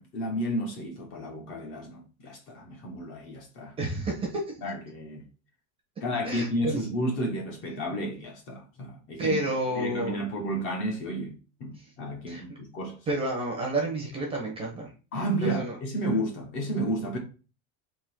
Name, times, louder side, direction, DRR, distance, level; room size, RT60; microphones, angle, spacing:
voice 1, 0.0-3.8 4.6-5.2 6.0-9.4 9.7-13.1 15.1-17.2, right 1 dB, 30° left, 1.0 m, -32 dB
voice 2, 3.8-4.5 6.2-6.8 9.2-10.2 12.3-12.4 13.1-14.9 15.4-15.8, right 2 dB, 15° right, 0.8 m, -30 dB
3.8 x 3.0 x 4.5 m
supercardioid pair, 175°, 40 cm